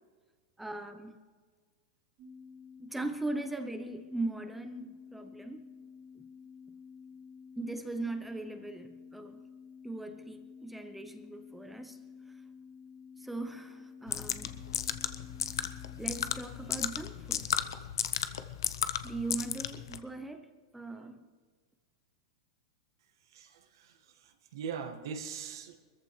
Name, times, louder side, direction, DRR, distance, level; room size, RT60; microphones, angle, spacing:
voice 1, 0.6-1.2 2.8-5.7 6.1-6.2 7.6-9.4 9.8-12.0 13.2-14.6 16.0-17.7 19.0-20.5 20.7-21.2, right 2 dB, 5° right, 0.8 m, -39 dB
sound 1, 2.2-16.4, left 6 dB, 40° right, 2.3 m, -51 dB
sound 2, 14.1-20.0, left 9 dB, 85° left, 0.8 m, -34 dB
voice 2, 23.3-23.9 24.2-25.8, right 6 dB, 75° right, 1.6 m, -41 dB
23.0 x 14.0 x 3.3 m
hypercardioid pair, 125°, 2 cm